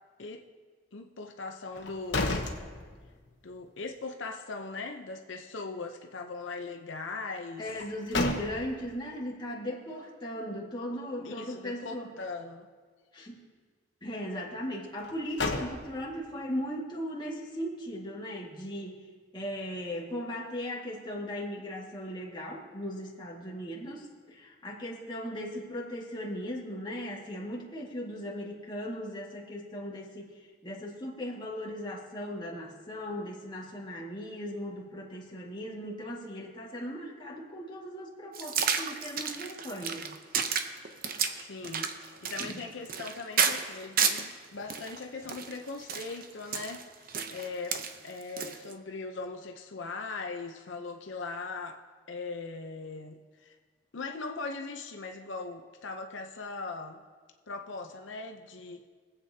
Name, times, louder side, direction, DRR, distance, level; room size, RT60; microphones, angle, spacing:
voice 1, 0.9-2.5 3.4-7.8 11.2-12.7 41.4-51.8 52.1-53.6 53.9-57.0 57.5-58.9, left 3 dB, 85° left, 4 dB, 0.7 m, -40 dB
sound 1, 1.7-3.4 3.8-3.9 7.7-8.9 15.0-16.2, left 3 dB, 65° left, 1.1 m, -33 dB
voice 2, 7.6-12.1 13.1-13.4 14.0-19.0 19.3-30.3 30.6-40.1 42.5-42.6, equal, 25° left, -4 dB, 1.9 m, -38 dB
sound 2, 38.3-44.3 44.7-48.7, right 6 dB, 50° right, 0.7 m, -31 dB
24.5 x 8.2 x 2.8 m, 1.5 s
head